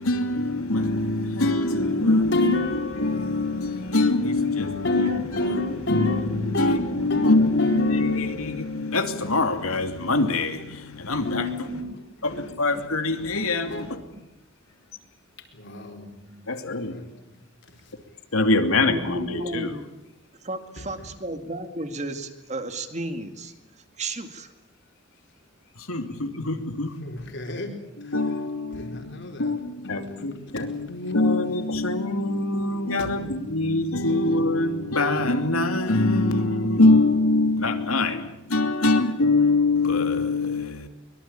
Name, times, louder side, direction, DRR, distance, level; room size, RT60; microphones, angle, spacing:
voice 1, 0.0-2.5 3.0-5.1 5.4-5.6 5.9-11.4 12.2-13.9 16.5-17.0 18.3-19.7 25.9-27.0 28.0-40.9, left 2 dB, 80° left, 2.7 m, -24 dB
voice 2, 2.3-4.2 4.8-6.8 7.1-9.8 11.2-12.0 12.3-12.6 13.4-13.9 15.5-16.1 16.9-17.1 27.0-28.2 28.7-29.6 30.5-30.7 31.0-31.1 32.9-33.1, left 2 dB, 55° left, 4.5 m, -30 dB
voice 3, 6.3-6.6 10.6-10.7 11.7-12.0 12.7-12.8 14.1-14.2 16.0-16.5 17.3-17.5 18.8-19.9 20.4-23.5 24.0-24.5, right 1 dB, 30° right, 2.2 m, -34 dB
24.0 x 22.5 x 8.9 m
head